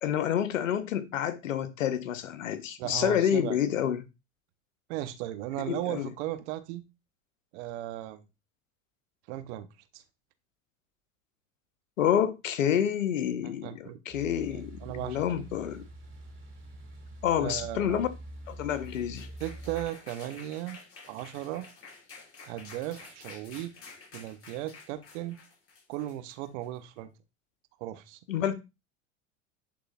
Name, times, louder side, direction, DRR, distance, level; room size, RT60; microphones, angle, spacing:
voice 1, 0.0-4.0 5.7-6.1 12.0-15.8 17.2-18.1 18.5-19.3 28.3-28.5, left 9 dB, 90° left, 0.8 m, -28 dB
voice 2, 2.8-3.6 4.9-6.8 7.5-8.2 9.3-9.7 9.9-10.0 13.4-14.0 14.5-15.2 17.4-18.0 19.4-20.8 21.1-21.7 22.4-23.7 24.1-25.4 25.9-27.1 27.8-28.2, right 14 dB, 65° right, 0.9 m, -36 dB
sound 1, 14.1-19.9, right 1 dB, 30° right, 2.3 m, -45 dB
sound 2, 18.5-26.8, left 4 dB, 35° left, 4.4 m, -51 dB
10.5 x 3.8 x 2.4 m
hypercardioid pair, 90°, 38 cm